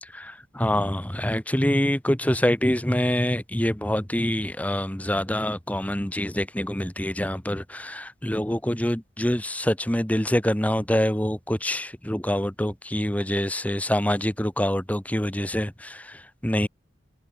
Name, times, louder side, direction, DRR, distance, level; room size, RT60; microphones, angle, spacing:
voice 1, 0.0-16.7, left 1 dB, 10° left, 1.1 m, -25 dB
head